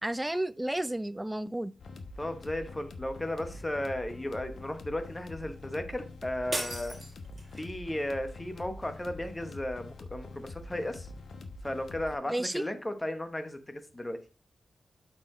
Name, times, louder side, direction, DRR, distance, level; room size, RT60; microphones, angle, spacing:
voice 1, 0.0-1.7 12.3-12.7, right 1 dB, 10° right, 0.3 m, -32 dB
sound 1, 1.8-12.2, left 2 dB, 70° left, 1.0 m, -45 dB
voice 2, 2.2-7.0 7.5-11.1 11.6-14.2, left 1 dB, 15° left, 1.0 m, -35 dB
sound 2, 6.5-7.8, right 2 dB, 30° right, 1.8 m, -37 dB
8.4 x 4.6 x 4.3 m
wide cardioid pair, 140°, 0 cm